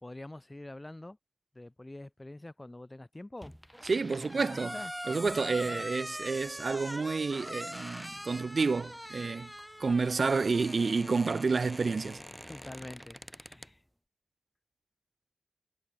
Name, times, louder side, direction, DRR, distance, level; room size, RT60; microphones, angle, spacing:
voice 1, 0.0-1.2 1.6-3.6 4.0-4.9 5.5-5.8 12.5-13.8, left 1 dB, 25° left, 3.6 m, -46 dB
sound 1, 3.4-13.7, equal, ahead, 1.3 m, -43 dB
voice 2, 3.8-4.7 5.1-9.5 9.8-12.2, right 4 dB, 60° right, 0.4 m, -29 dB
cardioid pair, 45°, 0 cm